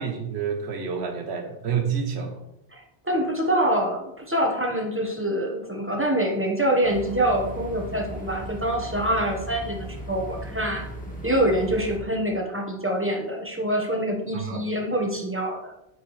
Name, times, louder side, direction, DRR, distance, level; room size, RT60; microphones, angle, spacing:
voice 1, 0.0-2.4 14.3-14.6, right 6 dB, 85° right, 4 dB, 1.1 m, -28 dB
voice 2, 2.7-10.9 11.2-15.7, right 1 dB, 15° right, 1 dB, 1.1 m, -25 dB
sound 1, 6.8-12.0, equal, 10° left, 1.4 m, -37 dB
9.2 x 4.7 x 3.1 m, 0.87 s
omnidirectional pair, 1.1 m